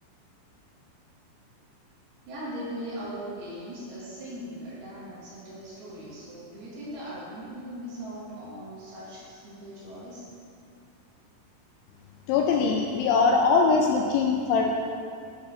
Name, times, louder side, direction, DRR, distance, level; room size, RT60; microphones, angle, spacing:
voice 1, 2.3-10.3, equal, 65° right, -8 dB, 3.0 m, -39 dB
voice 2, 12.3-14.8, left 4 dB, 85° left, 2 dB, 2.7 m, -22 dB
8.5 x 4.4 x 5.7 m, 2.4 s
omnidirectional pair, 5.6 m